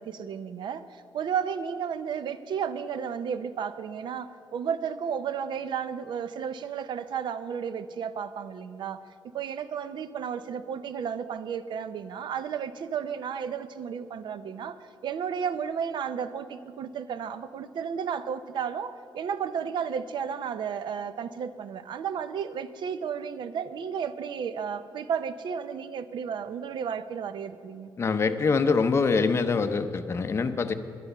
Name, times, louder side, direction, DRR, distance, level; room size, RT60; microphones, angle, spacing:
voice 1, 0.0-9.0 9.3-14.8 15.0-27.9, right 7 dB, 65° right, 13 dB, 0.6 m, -33 dB
voice 2, 28.0-30.7, left 4 dB, 30° left, 8 dB, 0.7 m, -24 dB
11.0 x 9.3 x 6.6 m, 2.6 s
cardioid pair, 125°, 9 cm